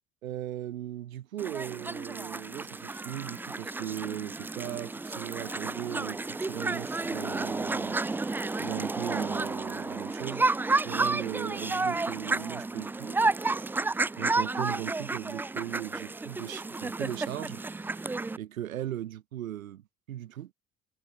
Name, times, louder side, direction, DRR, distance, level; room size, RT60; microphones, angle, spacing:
voice 1, 0.2-8.0 8.6-10.5 10.8-13.2 14.1-17.9 18.4-19.8 20.1-20.5, right 12 dB, 85° right, 0.6 m, -38 dB
sound 1, 1.4-18.4, right 3 dB, 5° right, 0.3 m, -31 dB
figure-of-eight pair, 60°, 40 cm